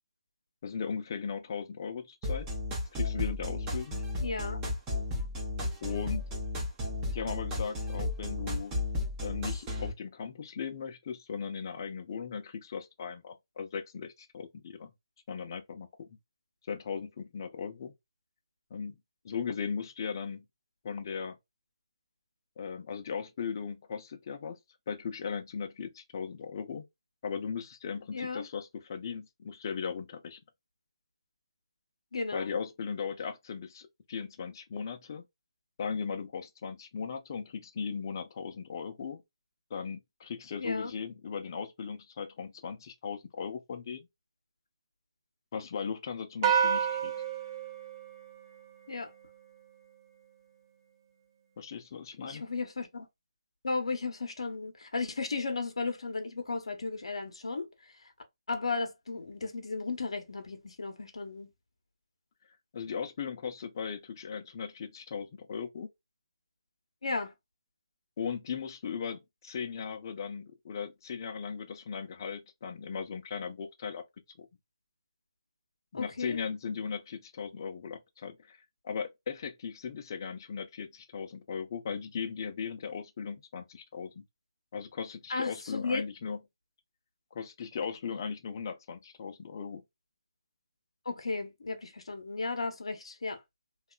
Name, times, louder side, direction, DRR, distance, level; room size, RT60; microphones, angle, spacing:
voice 1, 0.6-2.5 2.9-4.0 5.8-6.2 7.1-8.7 9.2-14.9 15.3-16.2 16.7-17.9 18.7-19.0 19.2-20.4 20.8-21.4 22.6-24.6 24.9-26.8 27.2-30.4 32.3-35.2 35.8-39.2 39.7-44.1 45.5-47.1 51.6-52.4 62.7-65.9 68.2-74.0 74.4-74.5 75.9-84.2 84.7-86.4 87.3-89.8, left 6 dB, 40° left, 0.5 m, -38 dB
sound 1, 2.2-9.9, left 2 dB, 15° right, 0.7 m, -33 dB
voice 2, 4.2-4.6 28.1-28.4 32.1-32.5 40.6-40.9 48.9-49.1 52.2-53.1 53.6-57.7 58.5-61.5 67.0-67.3 75.9-76.4 85.3-86.0 91.0-93.4, left 3 dB, 65° left, 0.8 m, -34 dB
sound 2, 46.4-49.0, right 7 dB, 35° right, 0.8 m, -30 dB
2.8 x 2.3 x 2.2 m
figure-of-eight pair, 150°, 3 cm